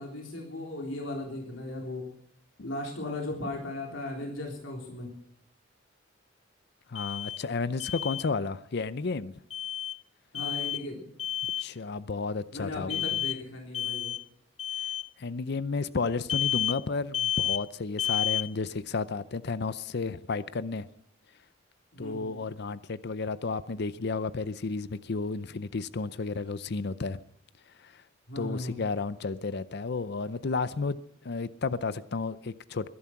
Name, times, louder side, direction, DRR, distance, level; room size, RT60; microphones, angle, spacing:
voice 1, 0.0-2.1 2.6-5.1 10.3-11.1 12.5-14.2 21.9-22.3 28.3-28.8, left 2 dB, 85° left, 3.8 m, -37 dB
voice 2, 6.9-9.3 11.6-13.0 15.2-20.9 22.0-27.2 27.8-28.0 28.4-32.9, left 4 dB, 60° left, 0.6 m, -32 dB
Alarm, 6.9-7.4 7.8-8.2 9.5-10.0 10.3-10.8 11.2-11.7 12.9-13.4 13.7-14.2 14.6-15.0 16.3-16.8 17.1-17.6 18.0-18.5, left 11 dB, 30° left, 0.8 m, -30 dB
21.5 x 11.0 x 5.9 m
head